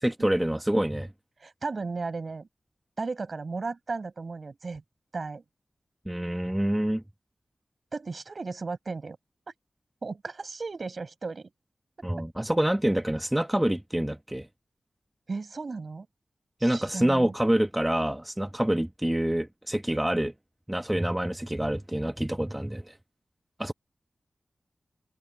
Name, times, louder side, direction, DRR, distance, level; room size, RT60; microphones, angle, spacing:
voice 1, 0.0-1.1 6.0-7.0 12.0-14.5 16.6-20.3 20.7-23.0 23.6-23.7, right 1 dB, 10° right, 1.4 m, -26 dB
voice 2, 1.4-2.5 3.0-4.8 5.1-5.4 7.9-9.2 9.5-9.6 10.0-11.5 12.0-12.1 15.3-16.1 16.6-17.3, right 4 dB, 65° right, 7.1 m, -35 dB
cardioid pair, 50°, 0 cm